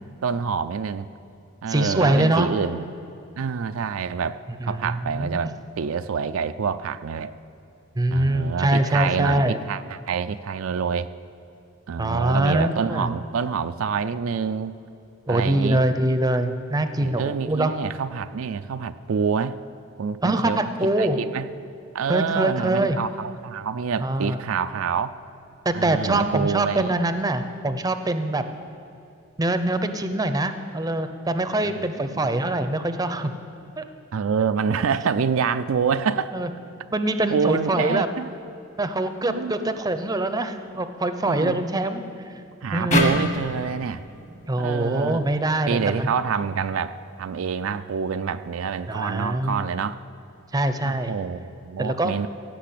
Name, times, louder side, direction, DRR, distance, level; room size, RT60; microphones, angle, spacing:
voice 1, 0.2-1.1 1.6-2.9 3.4-7.3 8.1-11.1 11.9-14.8 15.3-15.8 17.0-19.6 20.0-20.6 21.0-21.5 21.9-25.1 25.7-27.0 31.8-32.3 34.1-36.3 37.3-38.3 39.2-39.7 41.2-41.6 42.6-44.0 44.6-45.2 45.7-50.0 50.8-52.3, right 6 dB, 75° right, 10 dB, 0.4 m, -27 dB
voice 2, 1.7-2.6 4.6-5.5 8.0-9.6 12.0-13.1 15.3-17.7 20.2-21.2 22.1-23.0 24.0-24.4 25.6-28.4 29.4-33.3 33.8-33.9 36.3-36.5 36.9-38.1 38.8-42.0 42.7-43.1 44.5-46.1 48.9-49.7 50.5-51.1 51.8-52.3, right 1 dB, 20° right, 9 dB, 0.6 m, -24 dB
sound 1, 42.9-46.1, left 1 dB, 35° left, 1.3 m, -27 dB
16.5 x 5.9 x 8.4 m, 2.7 s
head